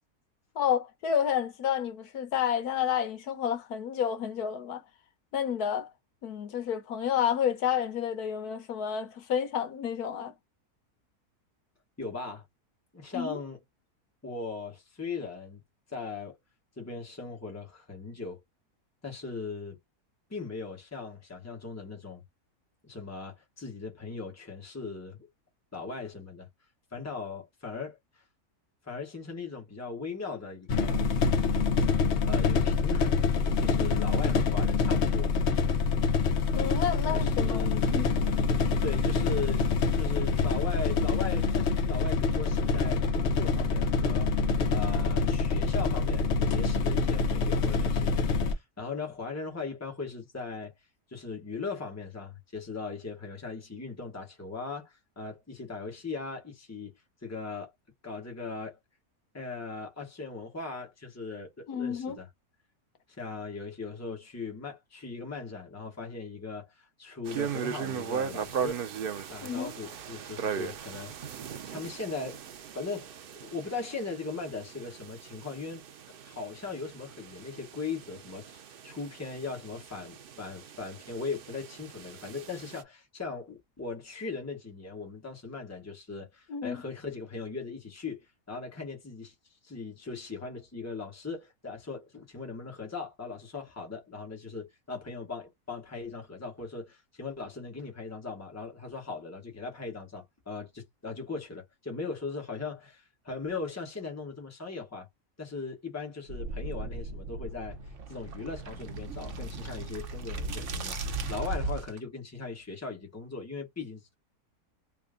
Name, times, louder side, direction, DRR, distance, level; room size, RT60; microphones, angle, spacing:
voice 1, 0.5-4.8 5.3-5.9 6.2-10.3 13.1-13.4 36.5-38.1 61.7-62.2 69.4-69.7 86.5-86.8, left 8 dB, 75° left, 1.3 m, -30 dB
voice 2, 12.0-12.4 12.9-13.6 14.2-15.6 15.9-16.4 16.8-18.4 19.0-19.8 20.3-22.2 22.8-25.3 25.7-26.5 26.9-28.2 28.8-31.0 32.3-33.2 33.6-35.3 37.1-37.8 38.8-50.7 51.1-56.9 57.2-57.7 58.0-58.8 59.3-62.3 63.1-68.8 69.3-72.4 72.7-75.8 76.2-78.6 78.8-89.3 89.6-105.1 105.4-107.8 108.1-114.2, left 4 dB, 10° left, 1.0 m, -39 dB
sound 1, 30.7-48.5, left 4 dB, 55° left, 0.9 m, -26 dB
sound 2, 67.3-82.8, right 7 dB, 85° right, 0.4 m, -39 dB
sound 3, 106.3-112.0, right 2 dB, 55° right, 1.0 m, -36 dB
3.4 x 2.2 x 3.7 m
omnidirectional pair, 1.6 m